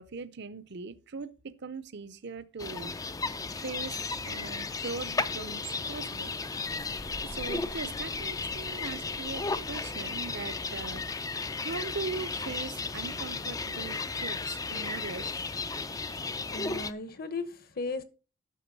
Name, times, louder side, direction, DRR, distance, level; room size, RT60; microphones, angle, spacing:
voice 1, 0.0-2.9 3.5-6.3 7.2-11.0 11.6-15.5 15.9-16.4, right 4 dB, 50° right, 0.6 m, -40 dB
sound 1, 2.6-16.9, left 4 dB, 15° left, 0.4 m, -34 dB
Bird, 6.2-11.9, left 1 dB, 75° left, 1.7 m, -50 dB
voice 2, 16.4-18.0, left 3 dB, 45° left, 1.0 m, -36 dB
9.3 x 6.6 x 5.3 m
head